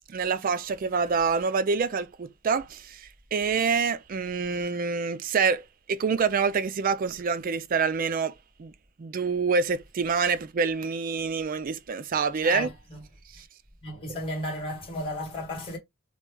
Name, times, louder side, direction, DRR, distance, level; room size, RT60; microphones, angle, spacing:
voice 1, 0.1-8.3 8.6-8.7 9.0-12.7 13.3-13.5 14.1-14.2, right 5 dB, 40° right, 0.3 m, -26 dB
voice 2, 13.8-15.8, left 1 dB, 25° left, 1.4 m, -33 dB
3.1 x 2.2 x 3.3 m
head